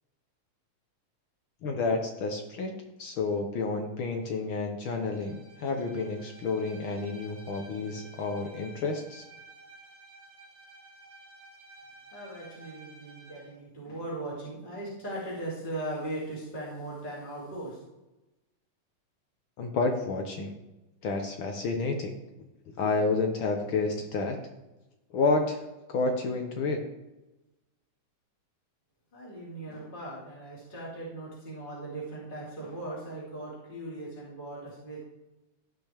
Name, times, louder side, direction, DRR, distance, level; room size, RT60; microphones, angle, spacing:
voice 1, 1.6-2.7 3.0-9.2 19.6-20.5 21.0-22.1 22.8-24.4 25.1-25.6 25.9-26.8, left 3 dB, 70° left, 4 dB, 1.2 m, -30 dB
Bowed string instrument, 4.9-13.5, right 2 dB, 60° right, 3.1 m, -53 dB
voice 2, 12.1-17.8 29.1-35.0, right 1 dB, 15° left, -7 dB, 3.3 m, -39 dB
16.5 x 6.0 x 3.4 m, 1.0 s
omnidirectional pair, 3.4 m